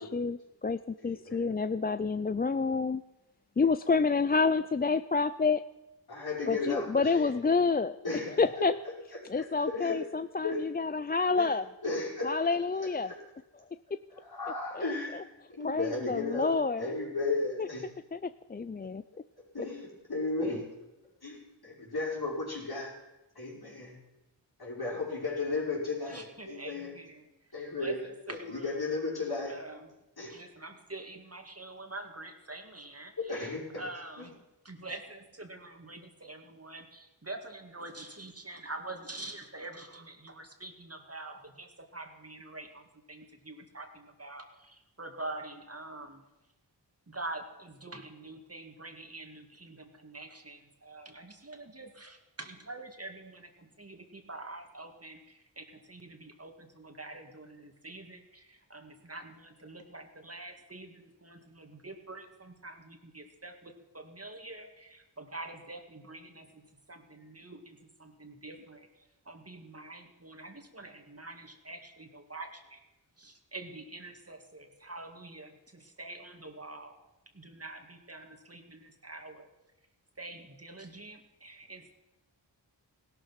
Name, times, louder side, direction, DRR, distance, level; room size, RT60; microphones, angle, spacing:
voice 1, 0.0-3.0 3.6-5.6 6.5-8.0 8.4-8.7 9.3-11.6 12.2-13.1 14.7-15.2 15.6-17.0 17.6-17.7 18.1-19.0, left 4 dB, 20° left, 13 dB, 0.4 m, -28 dB
voice 2, 1.0-1.4 6.1-7.3 8.0-8.7 9.3-10.0 10.4-10.6 11.4-11.5 11.8-12.6 13.1-13.2 14.2-15.2 15.5-17.9 19.5-20.7 21.2-22.9 23.4-24.0 24.6-26.9 27.5-29.5 30.2-30.4 33.3-33.8 34.2-34.3, left 3 dB, 55° left, -3 dB, 5.4 m, -35 dB
voice 3, 26.0-27.2 27.8-28.8 29.5-29.8 30.3-34.3 34.6-46.2 47.1-72.8 73.2-77.0 77.3-79.5 80.2-81.9, right 2 dB, 35° right, 4 dB, 2.1 m, -46 dB
16.5 x 12.0 x 5.9 m, 1.0 s
cardioid pair, 45°, 44 cm